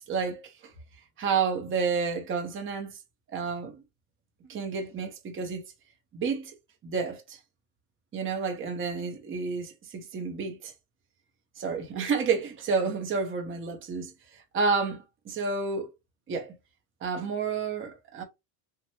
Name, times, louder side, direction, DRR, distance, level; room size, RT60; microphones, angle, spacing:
voice 1, 0.1-0.7 1.2-3.0 3.3-3.8 4.5-5.6 6.1-6.5 6.8-7.4 8.1-10.7 11.6-15.9 16.3-16.6 17.0-18.2, right 5 dB, 25° right, 0.8 m, -30 dB
2.9 x 2.3 x 2.8 m
supercardioid pair, 120°, 49 cm